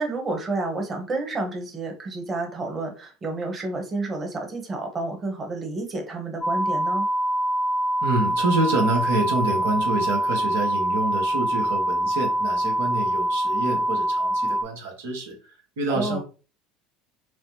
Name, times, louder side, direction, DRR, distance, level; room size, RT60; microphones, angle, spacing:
voice 1, 0.0-7.1 15.9-16.2, right 2 dB, 30° right, 3 dB, 1.2 m, -30 dB
sound 1, 6.4-14.6, equal, 15° left, 0.7 m, -24 dB
voice 2, 8.0-16.2, right 2 dB, 75° right, 1 dB, 1.1 m, -27 dB
4.7 x 2.0 x 2.9 m, 0.35 s
hypercardioid pair, 75°, 0 cm